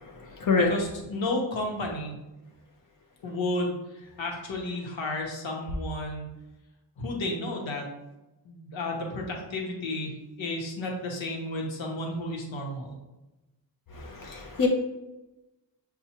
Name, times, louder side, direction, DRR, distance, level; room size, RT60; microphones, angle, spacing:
voice 1, 0.5-2.2 3.2-6.3 7.0-7.8 8.4-13.0, left 1 dB, 85° left, 0 dB, 1.1 m, -32 dB
voice 2, 14.2-14.7, left 4 dB, 45° left, 1 dB, 0.6 m, -24 dB
6.8 x 2.3 x 2.9 m, 1.0 s
wide cardioid pair, 135°, 45 cm